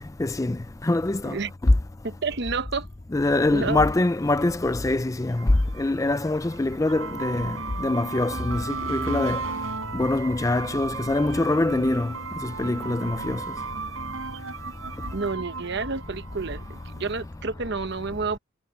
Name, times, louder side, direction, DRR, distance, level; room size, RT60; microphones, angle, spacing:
voice 1, 0.2-0.6 0.8-1.3 1.6-1.7 3.1-5.5 5.8-7.5 7.8-9.4 9.9-12.1 12.6-13.4, left 2 dB, 15° left, 0.4 m, -24 dB
voice 2, 2.0-2.9 3.5-3.8 15.1-18.4, right 4 dB, 55° right, 0.9 m, -30 dB
sound 1, 5.3-17.1, right 4 dB, 80° right, 4.3 m, -35 dB
head